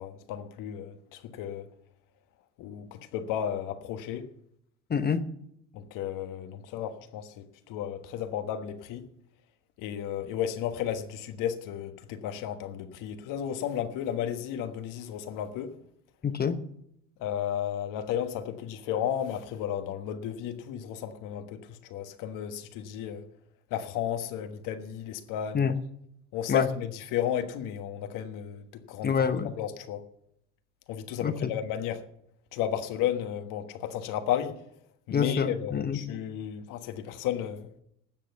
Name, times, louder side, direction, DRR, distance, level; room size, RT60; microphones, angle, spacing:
voice 1, 0.0-1.7 2.6-4.3 5.7-9.1 9.8-15.7 17.2-23.2 23.7-25.7 26.3-29.3 29.6-30.0 30.9-32.0 32.5-34.6 35.1-37.7, left 10 dB, 70° left, 1.4 m, -33 dB
voice 2, 4.9-5.2 16.2-16.6 25.5-25.7 26.5-26.7 29.0-29.6 31.2-31.5 35.1-36.1, left 6 dB, 30° left, 0.9 m, -27 dB
12.5 x 7.6 x 7.0 m
supercardioid pair, 75°, 33 cm